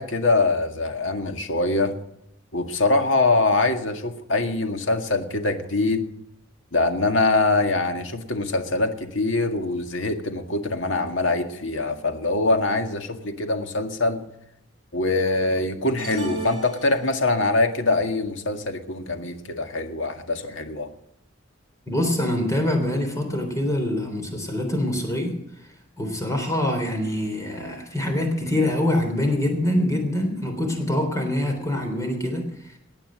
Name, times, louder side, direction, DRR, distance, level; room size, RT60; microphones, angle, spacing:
voice 1, 0.0-1.9 2.5-6.1 6.7-14.2 14.9-20.9, left 2 dB, 75° left, 6 dB, 1.9 m, -23 dB
sound 1, 16.0-17.5, right 2 dB, 25° right, 5.7 m, -34 dB
voice 2, 21.9-25.4 26.0-32.8, left 1 dB, 15° left, 4 dB, 3.5 m, -25 dB
19.5 x 8.9 x 6.3 m, 0.81 s
head